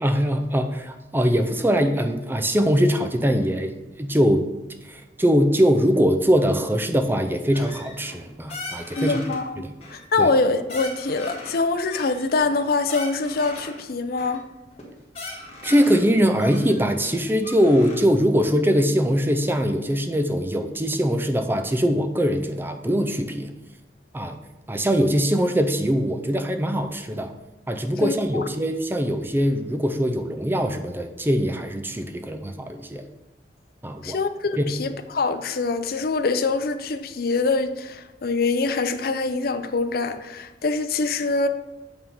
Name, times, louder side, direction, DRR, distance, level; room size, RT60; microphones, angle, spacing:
voice 1, 0.0-4.5 4.8-9.2 9.6-9.7 10.2-10.3 15.6-23.5 24.1-24.4 24.7-27.3 27.7-33.0 33.8-34.2 34.6-34.7, equal, 10° right, 6 dB, 0.5 m, -22 dB
sound 1, 7.5-8.2 8.5-9.4 9.8-10.4 10.7-11.6 11.9-13.8 14.2-14.4 14.8-14.9 15.1-16.1 16.4-18.0, left 2 dB, 35° left, 1.7 m, -38 dB
voice 2, 9.0-14.4 28.0-28.4 34.0-41.5, left 3 dB, 55° left, 9 dB, 0.5 m, -24 dB
8.6 x 3.6 x 5.5 m, 1.0 s
head